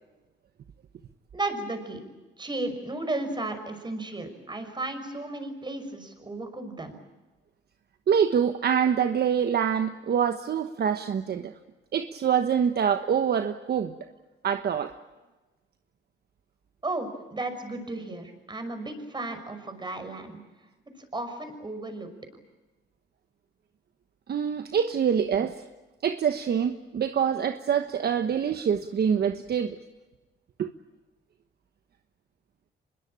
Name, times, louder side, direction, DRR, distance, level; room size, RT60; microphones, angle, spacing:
voice 1, 1.3-2.1 2.4-7.0 16.8-20.4 21.1-22.1, right 2 dB, 20° right, 8 dB, 5.8 m, -34 dB
voice 2, 8.1-11.5 11.9-13.9 14.4-14.9 24.3-25.6 26.0-29.8 30.6-30.7, right 8 dB, 55° right, 8 dB, 1.3 m, -25 dB
25.0 x 21.5 x 8.7 m, 1.2 s
cardioid pair, 90°, 20 cm